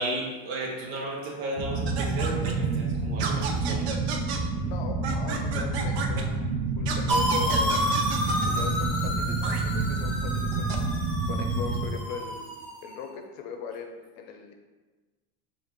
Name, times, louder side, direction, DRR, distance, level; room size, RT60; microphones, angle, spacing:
voice 1, 0.0-3.9, right 1 dB, 50° right, -3 dB, 0.9 m, -34 dB
sound 1, 1.6-11.9, right 3 dB, 25° right, 0.5 m, -28 dB
sound 2, 1.9-2.5 3.2-4.4 5.0-6.2 6.8-8.7 9.4-9.6 10.5-10.8, right 6 dB, 85° right, 0.6 m, -33 dB
voice 2, 4.6-6.5 6.8-7.9 8.5-11.0 11.3-12.4 12.8-14.5, left 6 dB, 60° left, 4 dB, 0.6 m, -39 dB
sound 3, 7.1-12.9, equal, 5° left, 0.8 m, -30 dB
4.9 x 2.4 x 3.0 m, 1.3 s
supercardioid pair, 140°, 31 cm